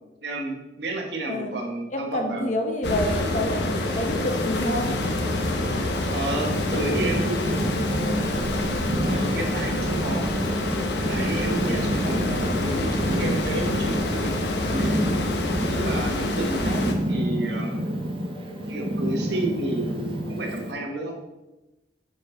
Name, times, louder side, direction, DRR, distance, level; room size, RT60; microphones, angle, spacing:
voice 1, 0.2-2.5 3.0-3.2 6.1-7.7 9.0-10.3 11.1-14.4 14.6-15.0 15.6-17.8 18.7-21.1, right 2 dB, 70° right, 1 dB, 1.2 m, -31 dB
voice 2, 1.9-5.0, left 1 dB, 40° left, 3 dB, 0.8 m, -28 dB
sound 1, 2.8-16.9, left 2 dB, 70° left, 0.8 m, -27 dB
sound 2, 3.4-20.8, right 1 dB, 15° left, 1.3 m, -39 dB
Purr, 5.9-20.7, right 1 dB, 30° right, 0.6 m, -29 dB
6.2 x 5.2 x 3.8 m, 1.0 s
head